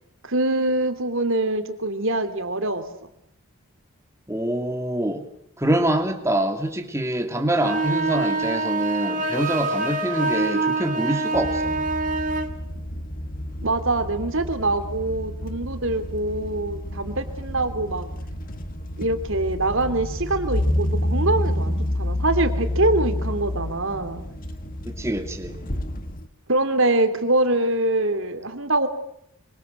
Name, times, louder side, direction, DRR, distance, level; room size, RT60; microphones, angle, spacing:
voice 1, 0.2-2.8 13.6-18.1 19.0-24.2 26.5-28.9, right 2 dB, 60° right, 8 dB, 3.1 m, -24 dB
voice 2, 4.3-5.2 5.6-11.9 24.9-25.5, right 1 dB, 15° right, 5 dB, 2.6 m, -25 dB
sound 1, 7.6-12.5, right 3 dB, 35° right, 2.3 m, -25 dB
sound 2, 11.3-26.3, left 1 dB, 40° left, 1.9 m, -29 dB
25.0 x 25.0 x 7.9 m, 0.74 s
head